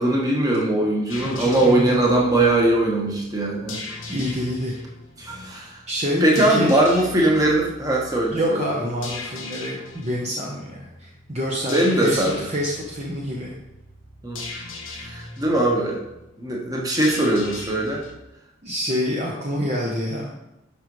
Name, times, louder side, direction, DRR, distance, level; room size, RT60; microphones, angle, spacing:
voice 1, 0.0-3.8 5.2-5.8 6.2-8.6 11.7-12.4 14.2-14.4 14.9-16.0 16.4-18.0, right 1 dB, 20° right, -2 dB, 1.3 m, -20 dB
sound 1, 1.1-18.1, left 3 dB, 85° left, 1.1 m, -39 dB
voice 2, 1.2-2.0 4.1-4.7 5.9-6.7 8.3-13.5 18.6-20.3, equal, 35° right, -3 dB, 0.9 m, -27 dB
11.0 x 5.0 x 3.2 m, 0.90 s
head